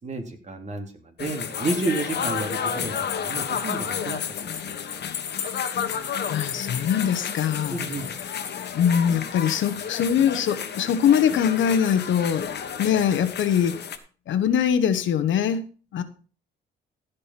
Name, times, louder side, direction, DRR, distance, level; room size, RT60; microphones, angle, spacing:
voice 1, 0.0-4.2 4.5-4.7 7.7-8.1, right 3 dB, 35° right, 4 dB, 3.1 m, -31 dB
sound 1, 1.2-14.0, left 7 dB, 55° left, 1.5 m, -31 dB
voice 2, 6.3-7.8 8.7-12.5 12.8-13.8 14.3-15.6 15.9-16.0, left 8 dB, 75° left, 12 dB, 1.2 m, -22 dB
15.5 x 5.3 x 5.9 m, 0.39 s
cardioid pair, 90°, 20 cm